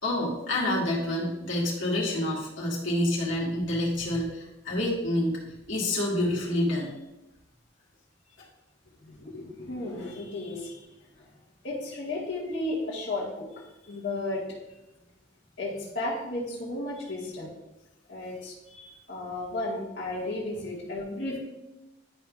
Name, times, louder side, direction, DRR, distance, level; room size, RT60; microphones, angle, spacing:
voice 1, 0.0-5.4 5.7-6.9 10.4-10.7 18.7-18.9, left 1 dB, 85° left, -4 dB, 2.0 m, -28 dB
voice 2, 9.0-10.7 11.6-13.4 13.9-14.6 15.6-17.5 18.1-18.5 19.1-21.4, left 2 dB, 70° left, -7 dB, 1.7 m, -33 dB
11.0 x 5.4 x 2.4 m, 0.94 s
head